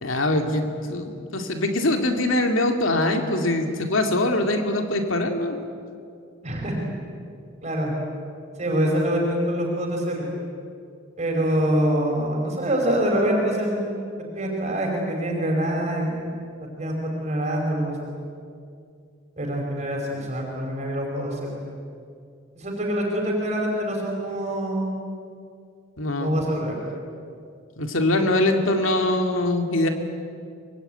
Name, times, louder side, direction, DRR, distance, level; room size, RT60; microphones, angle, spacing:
voice 1, 0.0-5.6 26.0-26.4 27.8-29.9, left 1 dB, 80° left, 4 dB, 2.4 m, -23 dB
voice 2, 6.4-6.7 7.6-7.9 8.6-10.3 11.2-13.9 14.3-16.2 16.8-18.2 19.4-21.6 22.5-25.0 26.2-26.7, right 1 dB, 35° right, 0 dB, 5.0 m, -25 dB
24.5 x 23.0 x 9.1 m, 2.4 s
head